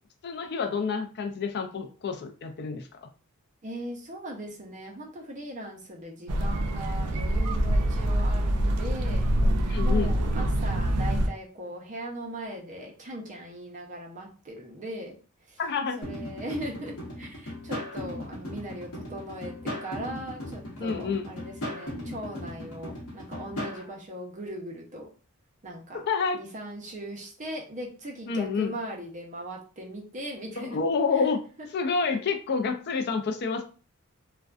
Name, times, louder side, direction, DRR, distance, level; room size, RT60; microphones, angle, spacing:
voice 1, 0.2-2.9 9.7-10.1 15.6-16.0 20.8-21.3 26.1-26.4 28.3-28.7 30.7-31.4 31.7-33.6, left 5 dB, 50° left, 6 dB, 0.4 m, -28 dB
voice 2, 3.6-9.3 9.8-15.2 15.4-15.6 16.0-25.1 25.6-26.0 26.3-30.8 31.1-31.3 31.6-31.7, right 1 dB, 35° right, -1 dB, 0.6 m, -39 dB
sound 1, 6.3-11.3, right 1 dB, 85° right, 0.4 m, -25 dB
sound 2, 16.0-23.8, left 1 dB, 75° left, 0.9 m, -37 dB
2.4 x 2.2 x 2.4 m, 0.37 s
head